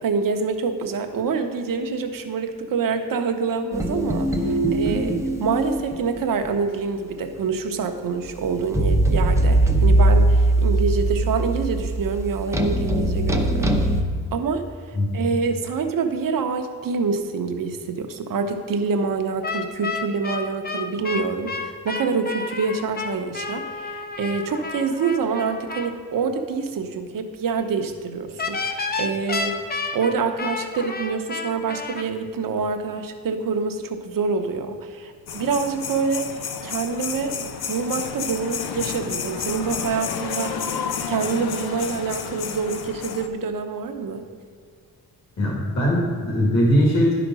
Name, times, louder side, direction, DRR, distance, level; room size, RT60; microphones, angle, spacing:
voice 1, 0.0-5.1 5.4-13.9 14.3-14.6 15.1-29.7 29.9-36.2 36.6-37.3 37.7-44.3, right 5 dB, 65° right, 6 dB, 1.0 m, -26 dB
sound 1, 3.7-6.2 6.4-6.5 8.7-14.0, right 1 dB, 10° right, 0.7 m, -20 dB
sound 2, 19.4-25.9 28.4-32.0, left 4 dB, 25° left, 0.7 m, -30 dB
sound 3, 35.3-43.3, left 7 dB, 85° left, 0.8 m, -31 dB
voice 2, 45.4-47.1, equal, 50° left, -5 dB, 2.2 m, -20 dB
11.0 x 5.1 x 6.1 m, 2.1 s
wide cardioid pair, 155°, 36 cm